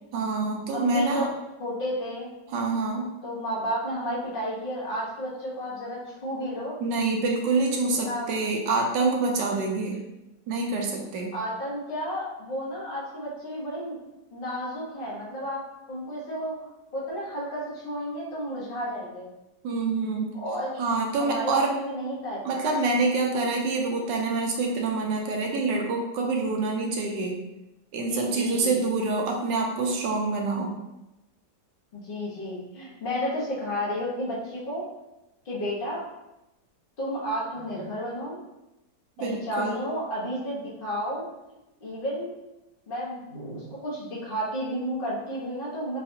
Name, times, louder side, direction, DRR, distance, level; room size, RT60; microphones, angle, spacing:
voice 1, 0.1-1.3 2.5-3.1 6.8-10.0 10.5-11.3 19.6-20.4 20.8-21.7 22.4-27.4 27.9-30.7 39.2-39.8, right 3 dB, 80° right, 1 dB, 1.2 m, -26 dB
voice 2, 0.7-1.3 1.6-2.3 3.2-6.7 8.0-8.3 9.6-9.7 11.3-14.0 14.3-15.6 15.9-16.6 16.9-19.3 20.4-20.8 21.2-22.6 28.1-28.8 31.9-34.8 35.4-36.0 37.0-38.4 39.2-41.2 41.8-42.3 42.9-46.0, equal, 40° left, -5 dB, 0.9 m, -32 dB
4.7 x 2.4 x 2.6 m, 0.95 s
omnidirectional pair, 2.0 m